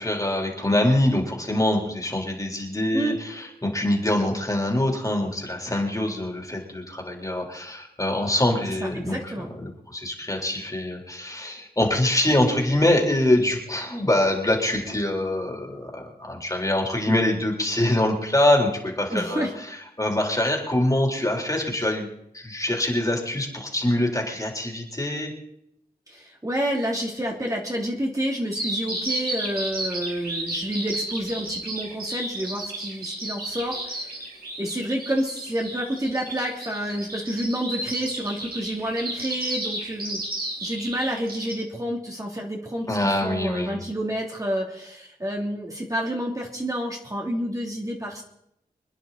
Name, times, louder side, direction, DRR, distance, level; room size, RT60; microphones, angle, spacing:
voice 1, 0.0-19.5 20.0-22.1 22.3-25.3 42.9-43.8, left 1 dB, 20° left, 1 dB, 3.8 m, -24 dB
voice 2, 8.8-9.5 19.1-19.5 26.1-34.2 34.6-40.2 40.6-48.2, equal, 20° right, -1 dB, 2.8 m, -29 dB
Bird vocalization bird call bird song, 28.5-41.5, right 2 dB, 75° right, 5.7 m, -32 dB
26.0 x 10.0 x 4.2 m, 0.76 s
wide cardioid pair, 80°, 16 cm